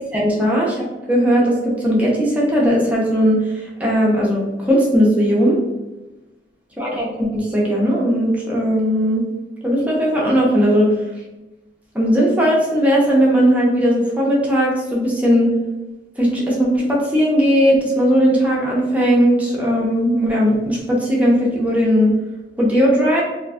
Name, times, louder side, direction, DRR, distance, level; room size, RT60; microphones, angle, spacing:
voice 1, 0.1-5.6 6.8-9.2 9.6-10.9 11.9-15.5 16.2-22.1 22.6-23.2, equal, 10° right, -4 dB, 0.5 m, -17 dB
2.4 x 2.2 x 2.3 m, 1.1 s
head